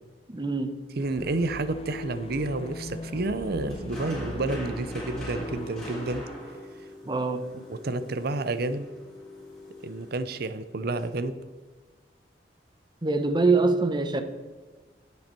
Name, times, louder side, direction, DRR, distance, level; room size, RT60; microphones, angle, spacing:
voice 1, 0.3-0.8 7.1-7.5 13.0-14.2, right 3 dB, 25° right, 9 dB, 0.8 m, -24 dB
sound 1, 1.0-6.2, left 1 dB, 35° left, 0.6 m, -39 dB
sound 2, 1.0-11.2, equal, 5° left, 3.6 m, -44 dB
voice 2, 1.0-6.2 7.7-8.9 9.8-11.4, right 2 dB, 60° right, 13 dB, 0.7 m, -30 dB
10.5 x 8.5 x 4.4 m, 1.4 s
head